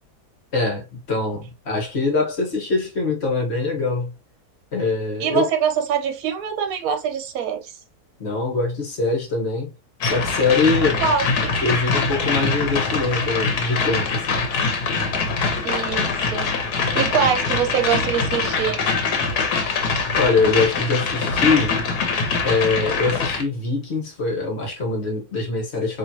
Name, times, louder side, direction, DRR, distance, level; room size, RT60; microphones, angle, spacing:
voice 1, 0.5-4.1 4.7-5.5 8.2-9.7 10.0-11.0 11.6-14.4 20.2-21.8 22.4-26.0, left 3 dB, 45° left, 1.3 m, -23 dB
voice 2, 5.2-7.7 11.0-11.5 15.6-18.8, right 7 dB, 65° right, 1.2 m, -24 dB
sound 1, 10.0-23.4, left 4 dB, 85° left, 1.4 m, -23 dB
4.4 x 3.0 x 2.7 m
omnidirectional pair, 1.7 m